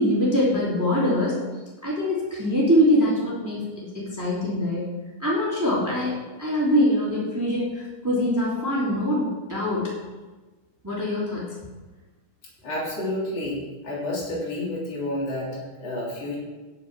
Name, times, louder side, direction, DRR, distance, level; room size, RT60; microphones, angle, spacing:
voice 1, 0.0-1.4 1.8-4.8 5.2-6.1 6.4-7.7 8.0-9.9 10.8-11.5, equal, 5° right, -7 dB, 2.6 m, -23 dB
voice 2, 12.6-13.6 13.8-16.4, left 1 dB, 40° left, -5 dB, 3.9 m, -30 dB
10.0 x 7.4 x 6.1 m, 1.2 s
omnidirectional pair, 4.7 m